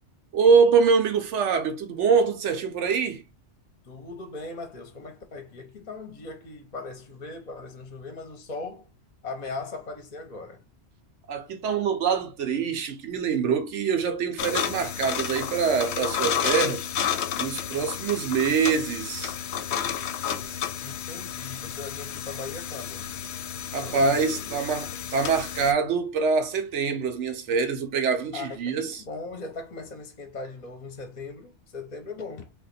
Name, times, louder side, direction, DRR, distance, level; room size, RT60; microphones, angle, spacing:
voice 1, 0.3-3.2 11.3-16.8 17.4-19.3 23.7-29.0, right 5 dB, 85° right, 1.0 m, -24 dB
voice 2, 3.8-8.9 9.2-10.6 20.8-23.1 23.7-24.6 28.3-32.5, left 3 dB, 40° left, 0.8 m, -39 dB
sound 1, 14.4-25.7, left 9 dB, 70° left, 0.8 m, -31 dB
2.9 x 2.5 x 4.1 m
omnidirectional pair, 1.2 m